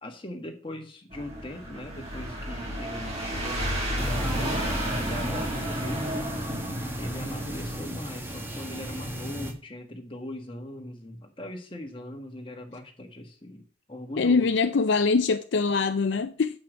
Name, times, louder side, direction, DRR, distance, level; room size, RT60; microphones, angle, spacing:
voice 1, 0.0-6.1 7.0-14.5, left 1 dB, 25° left, 1.5 m, -40 dB
sound 1, 1.1-7.8, equal, 30° right, 2.5 m, -32 dB
sound 2, 4.0-9.5, equal, 10° right, 1.3 m, -34 dB
voice 2, 14.2-16.6, left 4 dB, 55° left, 0.4 m, -23 dB
7.7 x 5.8 x 6.1 m
head